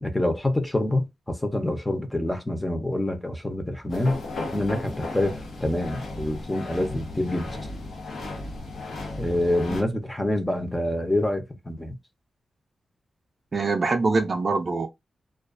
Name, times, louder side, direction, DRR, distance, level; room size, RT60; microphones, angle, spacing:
voice 1, 0.0-4.2 4.5-7.6 9.2-12.0, left 1 dB, 10° left, 0.6 m, -26 dB
sound 1, 3.9-9.8, left 2 dB, 85° left, 0.8 m, -35 dB
voice 2, 13.5-14.9, right 3 dB, 40° right, 0.4 m, -24 dB
2.3 x 2.2 x 2.4 m
wide cardioid pair, 115°, 0 cm